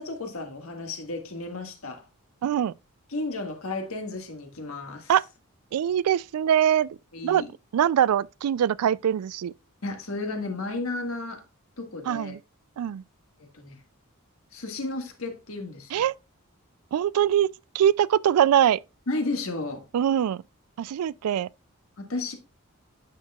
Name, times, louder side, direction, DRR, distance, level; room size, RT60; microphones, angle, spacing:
voice 1, 0.0-2.0 3.1-5.1 7.1-7.5 9.8-11.4 11.8-12.3 13.4-13.8 14.5-16.0 19.1-19.8 22.0-22.3, left 2 dB, 70° left, 1.7 m, -33 dB
voice 2, 2.4-2.7 5.1-5.2 5.7-7.0 7.2-7.4 7.7-9.5 12.1-12.4 12.8-13.0 15.9-16.1 16.9-17.5 17.7-18.8 19.9-20.4 20.8-21.5, right 10 dB, 85° right, 0.3 m, -23 dB
9.4 x 6.3 x 2.3 m
head